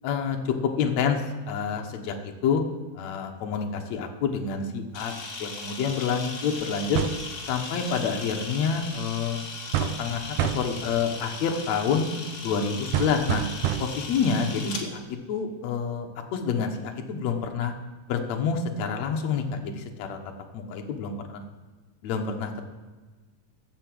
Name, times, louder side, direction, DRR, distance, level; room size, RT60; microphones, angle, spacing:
voice 1, 0.0-2.6 3.0-7.0 7.5-9.4 9.8-12.1 12.4-13.4 13.8-17.7 18.1-20.2 20.5-21.1 22.0-22.7, left 6 dB, 65° left, 3 dB, 2.2 m, -28 dB
Camera, 4.9-14.8, left 3 dB, 40° left, 1.5 m, -38 dB
sound 1, 7.0-7.3 9.7-10.1 10.4-10.8 12.9-14.1, right 10 dB, 80° right, 2.0 m, -27 dB
12.0 x 7.1 x 7.7 m, 1.3 s
omnidirectional pair, 3.7 m